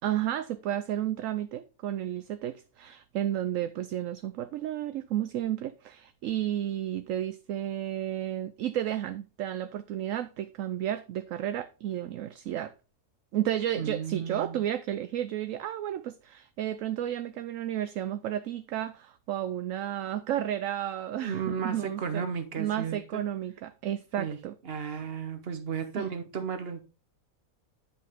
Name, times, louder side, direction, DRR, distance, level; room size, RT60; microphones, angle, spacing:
voice 1, 0.0-12.7 13.3-22.2 22.6-24.5 24.9-25.0 25.9-26.1, right 11 dB, 70° right, 0.9 m, -32 dB
voice 2, 13.8-14.6 21.2-23.2 24.2-24.4 24.6-26.8, right 6 dB, 45° right, 1.3 m, -34 dB
10.0 x 5.5 x 3.5 m
omnidirectional pair, 1.5 m